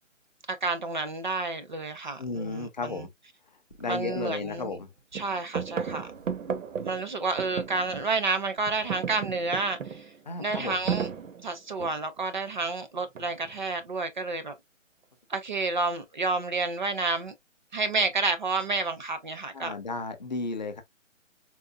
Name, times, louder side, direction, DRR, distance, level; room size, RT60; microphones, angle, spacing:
voice 1, 0.5-3.0 3.9-4.7 5.1-6.1 6.8-10.0 10.4-11.1 11.4-14.5 15.3-17.3 17.7-19.7, right 3 dB, 40° right, 0.5 m, -30 dB
voice 2, 2.2-3.1 3.8-4.9 10.3-10.8 19.5-20.8, left 3 dB, 35° left, 0.5 m, -33 dB
sound 1, 3.7-3.8 4.3-4.8 5.1-8.3 8.6-12.2 13.1-13.6, right 7 dB, 75° right, 0.7 m, -35 dB
3.7 x 2.4 x 2.3 m
hypercardioid pair, 155°, 39 cm